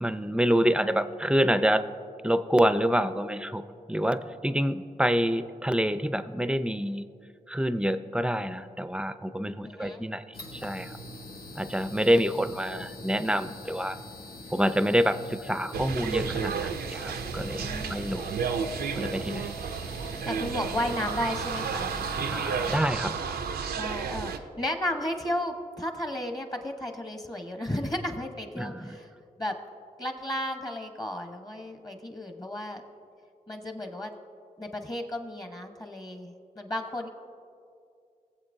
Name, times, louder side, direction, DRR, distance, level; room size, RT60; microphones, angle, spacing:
voice 1, 0.0-1.8 2.2-3.6 3.9-7.1 7.5-10.9 11.6-14.0 14.5-18.4 18.9-19.5 22.3-23.1 28.6-28.9, equal, 5° right, 12 dB, 0.4 m, -27 dB
voice 2, 9.6-10.0 17.4-18.0 20.2-21.9 23.7-29.1 29.4-29.5 30.0-32.8 33.5-34.1 34.6-37.1, left 1 dB, 25° left, 5 dB, 1.0 m, -34 dB
sound 1, 10.3-22.8, left 1 dB, 85° left, 0.8 m, -43 dB
sound 2, 15.7-24.4, right 6 dB, 90° right, 0.4 m, -32 dB
18.5 x 7.5 x 2.6 m, 2.4 s
cardioid pair, 40°, 16 cm